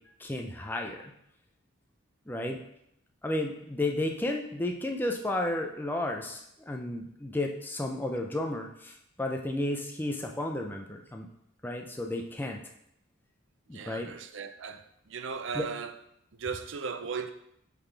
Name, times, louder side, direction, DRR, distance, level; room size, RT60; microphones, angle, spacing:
voice 1, 0.2-1.1 2.3-2.6 3.2-11.3 11.6-12.6 13.7-14.1 15.5-15.7, left 1 dB, 10° left, 0.5 m, -33 dB
voice 2, 13.7-15.9 16.3-17.3, right 5 dB, 65° right, 0.5 m, -37 dB
8.2 x 4.0 x 3.4 m
head